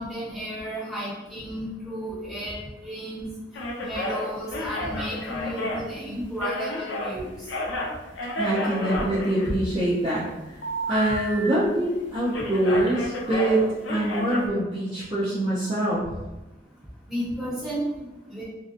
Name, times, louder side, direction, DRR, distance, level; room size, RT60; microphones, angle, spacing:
voice 1, 0.0-2.5 2.8-3.3 3.8-7.3 17.1-18.4, equal, ahead, -10 dB, 1.1 m, -33 dB
sound 1, 3.5-7.1 7.4-9.9 10.6-12.0 12.3-14.5, equal, 90° left, 0.4 m, -31 dB
voice 2, 8.4-10.3 10.9-13.6 13.9-16.0, right 1 dB, 30° right, -9 dB, 0.5 m, -24 dB
2.7 x 2.2 x 2.4 m, 1.0 s
head